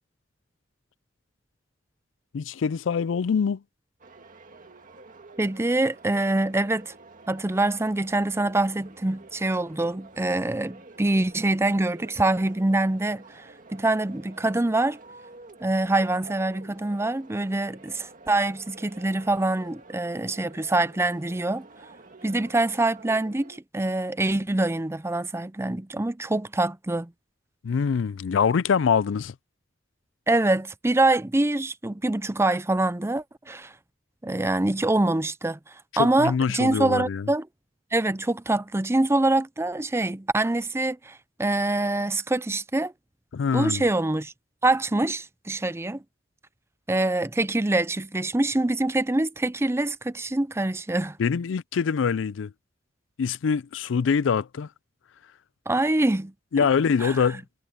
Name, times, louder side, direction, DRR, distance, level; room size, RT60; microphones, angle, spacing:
voice 1, 2.3-3.6 27.6-29.4 35.9-37.3 43.3-43.9 51.2-52.5 53.2-54.7 56.5-57.4, left 6 dB, 90° left, 0.4 m, -24 dB
sound 1, 4.0-23.6, right 3 dB, 45° right, 2.0 m, -49 dB
voice 2, 5.4-6.9 7.3-15.0 15.6-21.7 22.2-27.1 30.3-33.7 34.2-35.6 36.0-37.5 37.9-42.9 43.5-44.3 44.6-46.0 46.9-51.2 55.7-56.3 57.0-57.1, right 2 dB, 15° right, 0.6 m, -25 dB
head